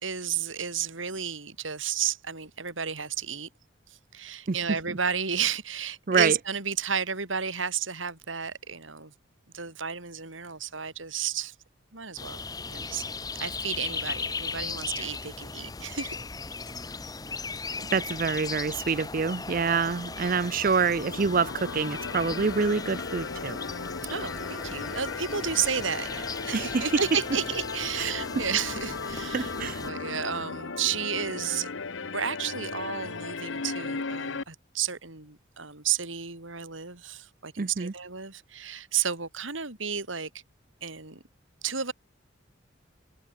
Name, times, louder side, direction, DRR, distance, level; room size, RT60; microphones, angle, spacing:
voice 1, 0.0-3.5 3.9-9.1 9.5-11.5 11.9-12.4 12.7-13.0 13.4-16.2 16.6-16.7 20.3-20.4 24.1-29.5 29.8-31.7 32.1-40.3 40.8-41.2 41.6-41.9, right 7 dB, 85° right, 4.5 m, -32 dB
spring in the woods - front, 12.2-29.9, left 4 dB, 20° left, 0.8 m, -38 dB
voice 2, 17.9-23.6 26.5-27.0 28.0-28.5 29.3-29.8 37.6-37.9, right 5 dB, 45° right, 0.5 m, -26 dB
Micron Pad Attack, 20.7-34.4, left 4 dB, 80° left, 1.1 m, -36 dB
head